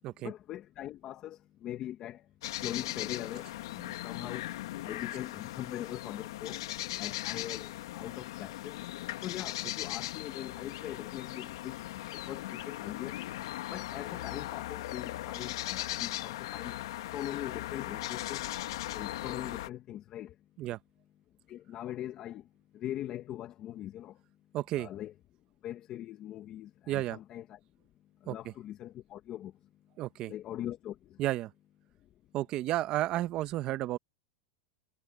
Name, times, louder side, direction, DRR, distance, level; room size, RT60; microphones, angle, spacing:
voice 1, 0.2-2.3 2.6-4.5 4.8-6.7 7.0-8.8 9.2-13.2 13.7-16.8 17.1-18.5 18.9-20.3 21.5-22.5 22.7-24.2 24.8-25.1 25.6-27.6 28.2-29.5 30.3-31.2, left 12 dB, 30° left, 1.3 m, -41 dB
sound 1, 2.4-19.7, left 15 dB, 70° left, 1.7 m, -38 dB
voice 2, 24.5-24.9 26.9-27.2 28.3-28.4 30.0-30.3 31.2-31.5 32.3-34.0, right 15 dB, 35° right, 1.1 m, -32 dB
supercardioid pair, 155°, 3 cm